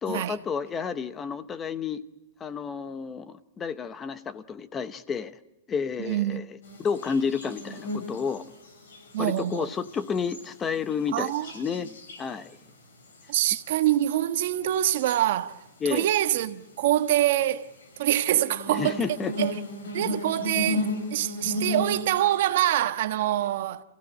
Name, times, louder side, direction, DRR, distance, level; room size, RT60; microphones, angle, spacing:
voice 1, 0.0-2.0 2.4-5.3 5.7-8.4 9.2-12.6 15.8-16.1 18.7-19.3, left 6 dB, 15° left, 0.8 m, -31 dB
voice 2, 6.0-6.4 9.1-9.7 11.1-11.5 13.3-15.6 15.9-17.7 18.0-19.0 19.4-19.5 19.9-23.8, right 13 dB, 45° right, 1.2 m, -25 dB
sound 1, 6.6-10.5 10.9-12.5 13.1-13.4 13.8-14.1 14.5-15.3 16.0-16.4 17.8-22.6, left 1 dB, 85° left, 8.0 m, -35 dB
28.0 x 16.5 x 9.9 m
supercardioid pair, 175°, 0 cm